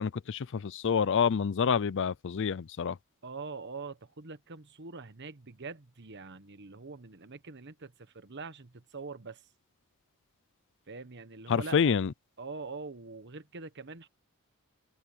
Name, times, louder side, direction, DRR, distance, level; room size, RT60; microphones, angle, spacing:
voice 1, 0.0-3.0 11.5-12.1, left 6 dB, 55° left, 0.4 m, -27 dB
voice 2, 3.2-9.4 10.9-12.0 12.4-14.1, right 4 dB, 50° right, 1.2 m, -44 dB
head